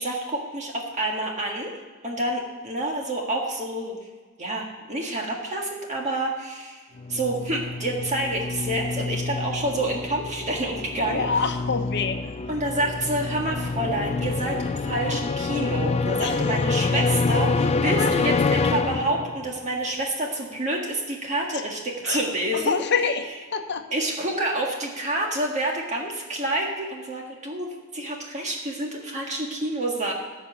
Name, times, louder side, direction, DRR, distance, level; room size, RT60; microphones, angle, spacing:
voice 1, 0.0-1.7 2.0-4.0 4.4-6.8 7.1-11.3 12.5-22.8 23.9-30.1, right 1 dB, 35° right, 0 dB, 1.6 m, -28 dB
sound 1, 7.0-19.6, left 4 dB, 30° left, 0.4 m, -27 dB
voice 2, 11.0-12.3 16.2-16.5 18.0-18.1 21.5-21.6 22.0-23.3 23.5-23.8, left 5 dB, 55° left, 6 dB, 1.0 m, -27 dB
14.0 x 5.4 x 7.1 m, 1.4 s
head